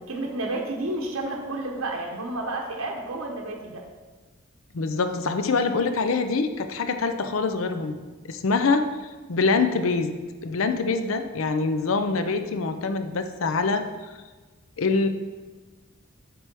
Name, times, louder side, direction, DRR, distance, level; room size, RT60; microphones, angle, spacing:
voice 1, 0.0-3.8, right 2 dB, 85° right, 0 dB, 0.9 m, -31 dB
voice 2, 4.7-8.0 8.3-13.9 14.8-15.1, left 4 dB, 75° left, 9 dB, 0.5 m, -25 dB
7.6 x 3.4 x 6.0 m, 1.3 s
head